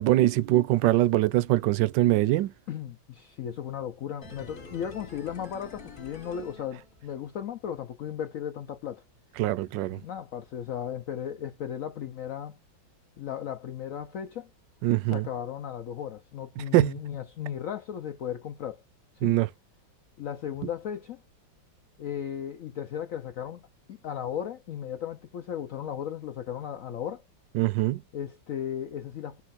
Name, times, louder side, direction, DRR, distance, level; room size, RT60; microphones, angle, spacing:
voice 1, 0.0-2.5 9.4-10.0 14.8-15.3 16.7-16.9 19.2-19.5 27.5-28.0, right 16 dB, 80° right, 1.2 m, -23 dB
voice 2, 2.7-9.0 9.9-12.6 13.2-14.5 15.1-18.8 19.2-19.3 20.2-21.2 22.0-27.2 28.1-29.4, left 9 dB, 70° left, 0.7 m, -36 dB
sound 1, 4.2-7.3 7.6-7.7, left 2 dB, 30° left, 1.5 m, -47 dB
4.1 x 2.4 x 4.1 m
omnidirectional pair, 2.0 m